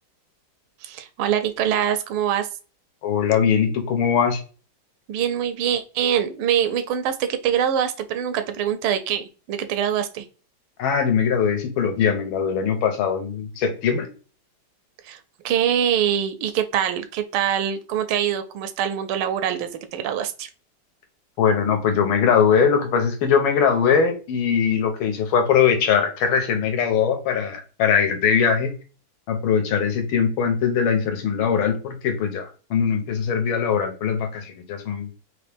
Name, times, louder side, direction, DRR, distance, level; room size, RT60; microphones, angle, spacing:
voice 1, 0.8-2.5 5.1-10.2 15.0-15.2 15.4-20.5, right 9 dB, 90° right, 9 dB, 1.5 m, -24 dB
voice 2, 3.0-4.4 10.8-14.1 21.4-28.7 29.3-35.1, left 7 dB, 80° left, 5 dB, 1.6 m, -21 dB
4.0 x 2.9 x 3.4 m, 0.36 s
omnidirectional pair, 2.3 m